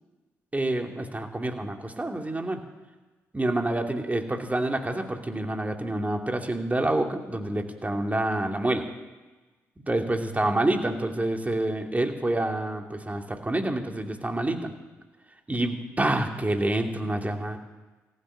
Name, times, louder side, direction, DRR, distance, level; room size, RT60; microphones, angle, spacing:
voice 1, 0.5-2.6 3.3-8.8 9.9-14.7 15.5-17.6, right 1 dB, 20° right, 4 dB, 2.7 m, -27 dB
15.5 x 9.1 x 10.0 m, 1.2 s
hypercardioid pair, 40°, 8 cm